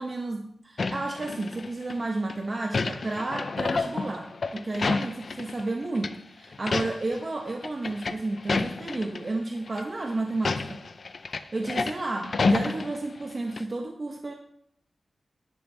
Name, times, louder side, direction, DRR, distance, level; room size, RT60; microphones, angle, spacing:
voice 1, 0.0-10.9 11.5-14.3, right 2 dB, 35° right, 2 dB, 0.9 m, -31 dB
sound 1, 0.8-1.9 2.3-5.7 6.0-6.1 6.5-7.2 7.5-9.2 9.7-9.8 10.3-13.3 13.6-13.7, left 4 dB, 55° left, 0.5 m, -30 dB
10.5 x 10.0 x 3.4 m, 0.70 s
wide cardioid pair, 145°, 0 cm